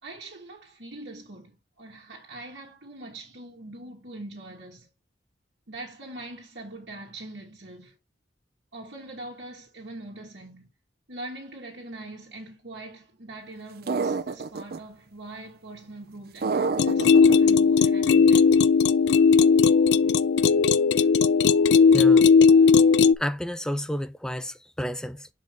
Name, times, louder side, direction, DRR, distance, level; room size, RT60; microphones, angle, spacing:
voice 1, 0.0-4.9 5.7-7.9 8.7-10.7 11.1-18.5, right 2 dB, 85° right, 1.8 m, -42 dB
sound 1, 13.9-14.8 16.4-17.4, right 4 dB, 60° right, 0.5 m, -27 dB
sound 2, 16.8-23.1, left 5 dB, 70° left, 0.4 m, -17 dB
voice 2, 21.9-22.3 23.2-25.3, equal, 5° left, 0.4 m, -31 dB
5.5 x 5.1 x 3.7 m
head